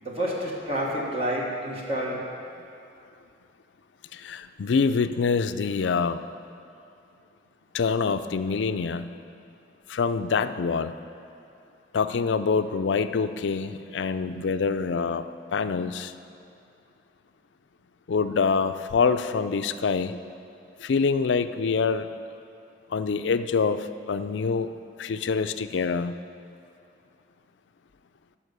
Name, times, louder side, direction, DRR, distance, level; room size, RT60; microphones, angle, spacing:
voice 1, 0.0-2.2, equal, 30° right, -3 dB, 1.3 m, -29 dB
voice 2, 4.1-6.3 7.7-9.1 9.9-10.9 11.9-15.2 15.5-16.1 18.1-20.2 20.8-22.1 22.9-24.7 25.0-26.2, left 5 dB, 85° left, 11 dB, 0.4 m, -25 dB
14.0 x 5.7 x 6.7 m, 2.5 s
head